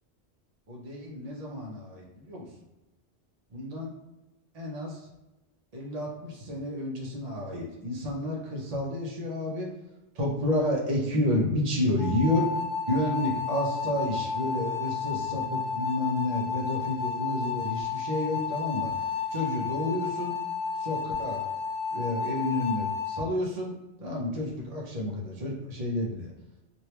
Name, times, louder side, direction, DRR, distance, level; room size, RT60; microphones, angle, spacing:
voice 1, 0.7-2.5 3.5-3.9 4.5-5.1 5.7-9.7 10.1-12.5 12.9-20.3 20.8-21.5 21.9-26.3, left 1 dB, 40° right, -3 dB, 0.8 m, -30 dB
sound 1, 12.0-23.2, left 6 dB, 65° left, 0.8 m, -32 dB
3.3 x 2.6 x 2.9 m, 1.0 s
omnidirectional pair, 1.1 m